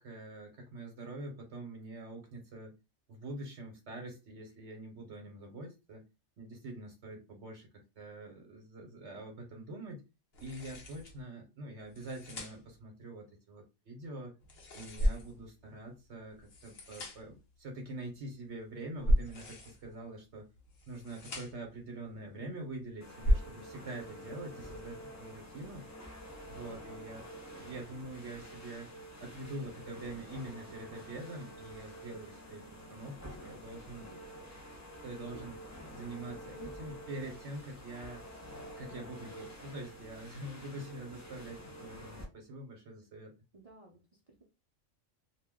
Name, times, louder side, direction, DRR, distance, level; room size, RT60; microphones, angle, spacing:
voice 1, 0.0-2.8 3.1-6.1 6.4-10.0 10.4-14.3 14.7-20.5 20.9-25.9 26.5-27.2 27.6-28.9 29.2-34.1 35.0-35.6 35.9-38.2 38.8-43.3, right 2 dB, 65° right, 2 dB, 1.0 m, -45 dB
sound 1, 10.3-11.2 11.8-12.8 14.4-15.5 16.3-17.4 19.1-19.9 20.6-21.8, left 3 dB, 55° left, 1.0 m, -50 dB
sound 2, 14.6-25.7, equal, 80° left, 1.2 m, -36 dB
sound 3, 23.0-42.2, equal, 30° left, 0.3 m, -48 dB
voice 2, 26.6-27.0 43.5-44.4, right 2 dB, 40° right, -2 dB, 0.5 m, -59 dB
2.6 x 2.2 x 3.5 m, 0.27 s
omnidirectional pair, 1.3 m